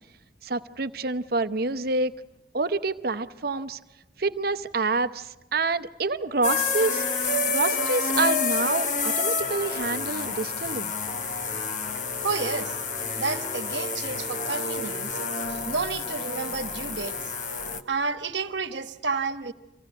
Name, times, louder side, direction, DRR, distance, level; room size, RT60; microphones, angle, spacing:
voice 1, 0.4-2.1 2.5-3.8 4.2-7.0 7.5-10.9, right 3 dB, 50° right, 11 dB, 0.8 m, -27 dB
sound 1, 6.4-17.8, left 4 dB, 40° left, 1.1 m, -29 dB
voice 2, 12.2-12.7 13.2-15.2 15.5-17.3 17.9-19.5, right 4 dB, 70° right, 9 dB, 1.2 m, -31 dB
25.5 x 16.0 x 9.2 m, 1.0 s
head